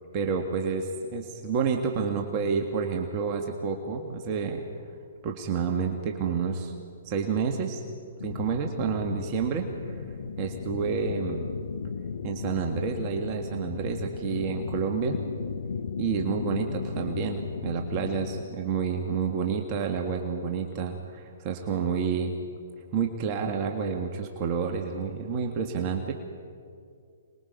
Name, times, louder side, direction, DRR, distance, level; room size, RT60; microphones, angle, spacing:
voice 1, 0.1-4.7 5.2-6.7 7.0-7.8 8.2-10.0 10.4-11.5 12.2-15.2 16.0-22.3 22.9-26.1, right 6 dB, 35° right, 3 dB, 1.8 m, -29 dB
sound 1, 8.2-18.4, left 5 dB, 70° left, 0.9 m, -35 dB
26.5 x 20.5 x 5.4 m, 2.3 s
hypercardioid pair, 125°, 0 cm